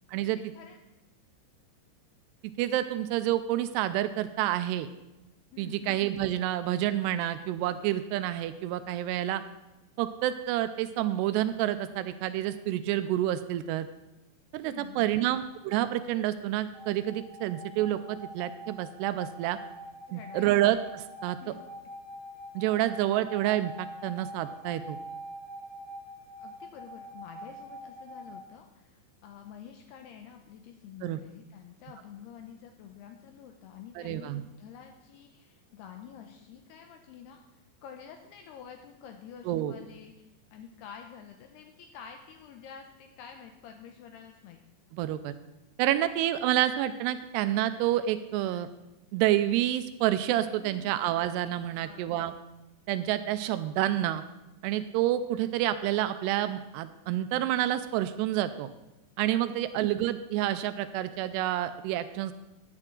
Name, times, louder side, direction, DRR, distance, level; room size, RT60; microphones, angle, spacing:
voice 1, 0.2-0.8 5.5-6.0 14.6-15.1 20.1-20.6 21.4-21.7 26.4-44.6 50.6-51.0 51.8-52.4 59.5-59.7, left 8 dB, 80° left, 5 dB, 2.5 m, -49 dB
voice 2, 2.6-4.9 5.6-9.4 10.0-13.9 14.5-19.6 20.1-21.4 22.6-25.0 31.0-31.2 34.0-34.4 39.5-39.7 44.9-45.3 45.8-48.7 49.1-52.3 52.9-54.2 54.6-58.7 59.2-62.3, right 13 dB, 85° right, 11 dB, 2.5 m, -28 dB
sound 1, 16.7-28.4, equal, 25° left, 3.7 m, -45 dB
14.5 x 9.7 x 3.8 m, 0.99 s
omnidirectional pair, 5.1 m